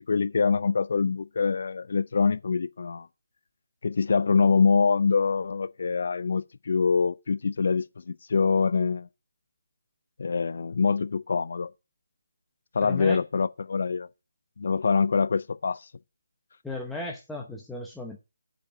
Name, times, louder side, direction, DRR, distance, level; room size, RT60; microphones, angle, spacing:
voice 1, 0.1-3.1 3.8-9.1 10.2-11.7 12.7-14.1 14.6-15.8, left 5 dB, 50° left, 0.5 m, -24 dB
voice 2, 12.8-13.2 16.6-18.2, left 2 dB, 5° left, 0.9 m, -35 dB
8.5 x 5.1 x 6.3 m
figure-of-eight pair, 150°, 0 cm